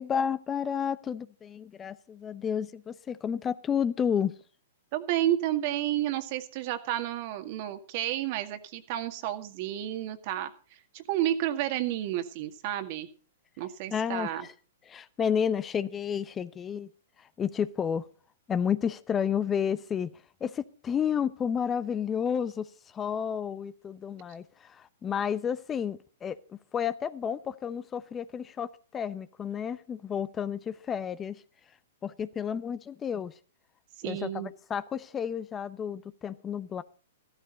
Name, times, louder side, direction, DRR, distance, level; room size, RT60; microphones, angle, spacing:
voice 1, 0.0-4.3 13.9-14.5 14.9-16.9 17.2-18.1 18.5-31.4 32.0-33.3 34.0-36.8, left 7 dB, 20° left, 15 dB, 0.8 m, -31 dB
voice 2, 4.9-13.1 13.6-14.5 34.0-34.5, right 12 dB, 50° right, 8 dB, 1.9 m, -31 dB
15.0 x 13.0 x 4.0 m, 0.39 s
hypercardioid pair, 115°, 0 cm